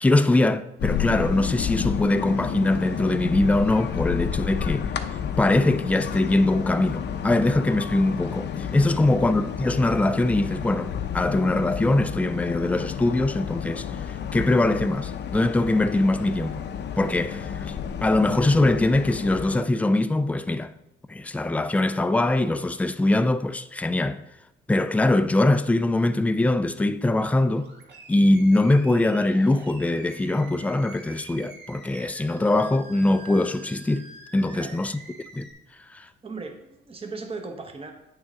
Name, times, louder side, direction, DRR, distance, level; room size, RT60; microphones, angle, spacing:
voice 1, 0.0-4.9 5.4-16.6 17.0-17.7 18.0-20.7 21.1-24.2 24.7-27.7 28.1-34.1 34.3-35.0 35.3-35.5 35.9-36.1, left 2 dB, 5° left, 0.4 m, -22 dB
sound 1, 0.8-19.6, left 7 dB, 60° left, 0.6 m, -31 dB
Animal, 27.5-35.5, right 3 dB, 60° right, 1.4 m, -46 dB
voice 2, 36.2-37.9, right 3 dB, 30° right, 1.0 m, -37 dB
8.4 x 6.2 x 3.6 m
cardioid pair, 90°, 20 cm